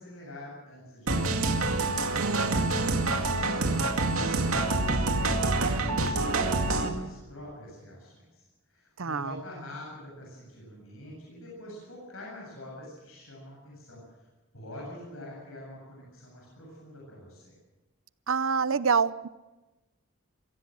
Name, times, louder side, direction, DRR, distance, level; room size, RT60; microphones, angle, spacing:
voice 1, 0.0-1.4 2.7-14.2 14.5-17.5, left 1 dB, 75° left, -3 dB, 7.8 m, -45 dB
sound 1, 1.1-6.9, right 2 dB, 85° right, 2.2 m, -26 dB
voice 2, 2.2-2.8 9.0-9.4 18.3-19.3, right 5 dB, 70° right, 17 dB, 0.7 m, -27 dB
23.5 x 16.0 x 7.6 m, 1.1 s
head